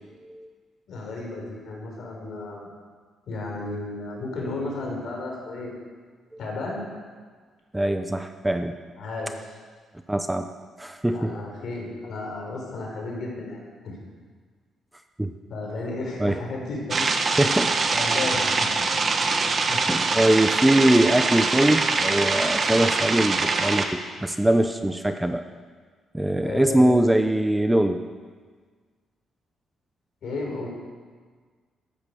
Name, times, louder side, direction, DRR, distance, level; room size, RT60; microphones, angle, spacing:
voice 1, 0.9-2.7 3.3-5.7 6.4-6.8 9.0-9.6 11.1-14.0 15.5-17.1 17.9-18.8 19.7-19.8 26.4-27.0 30.2-30.7, left 2 dB, 60° left, -1 dB, 4.8 m, -33 dB
voice 2, 7.7-8.7 10.1-10.5 10.8-11.3 15.2-15.3 16.2-16.4 17.4-17.7 19.9-25.4 26.1-28.0, right 1 dB, 10° right, 8 dB, 0.6 m, -22 dB
sound 1, 16.9-23.9, right 3 dB, 35° right, 1.2 m, -23 dB
14.5 x 11.0 x 6.9 m, 1.6 s
cardioid pair, 130°, 0 cm